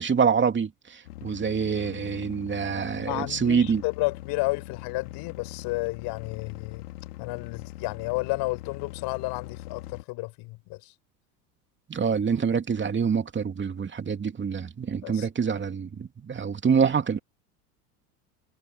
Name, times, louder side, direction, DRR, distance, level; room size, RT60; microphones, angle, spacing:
voice 1, 0.0-3.8 11.9-17.2, right 6 dB, 25° right, 2.8 m, -26 dB
sound 1, 1.0-10.0, left 16 dB, 75° left, 2.3 m, -42 dB
voice 2, 3.1-6.8 7.2-10.9 15.0-15.3, left 23 dB, 60° left, 4.6 m, -31 dB
hypercardioid pair, 85°, 46 cm